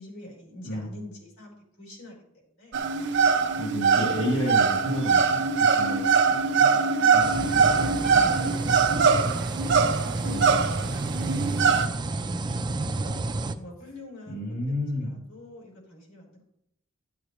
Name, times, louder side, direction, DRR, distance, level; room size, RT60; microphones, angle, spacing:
voice 1, 0.0-2.8 3.1-3.3 5.8-9.3 10.2-13.2 13.5-16.4, left 1 dB, 85° left, -2 dB, 4.1 m, -46 dB
sound 1, 2.7-11.9, right 5 dB, 55° right, 0.7 m, -22 dB
voice 2, 3.5-6.0 6.5-6.7 7.1-7.5 10.3-10.5 14.3-15.2, left 1 dB, 65° left, -4 dB, 2.8 m, -31 dB
sound 2, 7.2-13.5, right 2 dB, 20° right, 0.4 m, -30 dB
13.5 x 8.1 x 3.0 m, 0.80 s
head